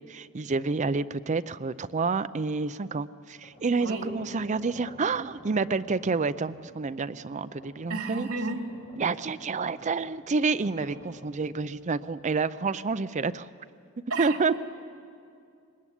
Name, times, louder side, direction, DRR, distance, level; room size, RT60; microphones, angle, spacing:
voice 1, 0.1-8.3 9.0-13.5 14.2-14.6, right 4 dB, 35° right, 13 dB, 0.5 m, -29 dB
sound 1, 3.3-13.1, equal, 50° left, 6.6 m, -52 dB
voice 2, 7.9-8.6 14.1-14.6, right 3 dB, 80° right, 3 dB, 2.7 m, -32 dB
22.5 x 19.5 x 10.0 m, 2.4 s
head